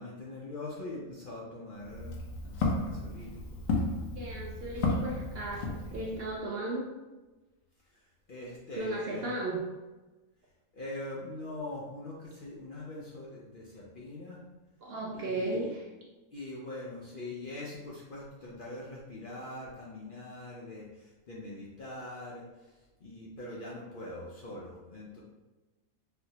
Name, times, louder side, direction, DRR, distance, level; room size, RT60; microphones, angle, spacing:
voice 1, 0.0-3.8 7.9-9.3 10.7-14.4 15.1-15.8 16.3-25.2, left 2 dB, 55° left, -5 dB, 0.6 m, -43 dB
Walk footsteps, 1.8-6.3, left 3 dB, 85° left, 1.0 m, -33 dB
voice 2, 4.2-6.9 8.7-9.6 14.8-15.8, right 2 dB, 65° right, -3 dB, 0.6 m, -35 dB
4.1 x 2.0 x 2.7 m, 1.1 s
omnidirectional pair, 1.4 m